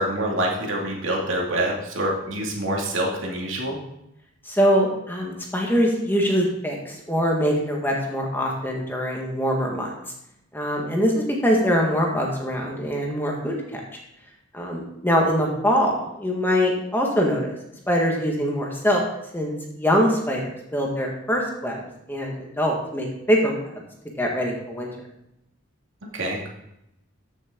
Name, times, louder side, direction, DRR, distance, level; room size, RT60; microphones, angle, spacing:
voice 1, 0.0-3.8 26.1-26.5, right 1 dB, 70° right, -1 dB, 2.4 m, -26 dB
voice 2, 4.4-9.9 10.5-13.8 14.5-17.5 17.9-19.0 19.3-20.4 20.7-23.7 24.2-24.9, equal, 10° left, -1 dB, 1.6 m, -23 dB
13.5 x 6.5 x 3.8 m, 0.82 s
head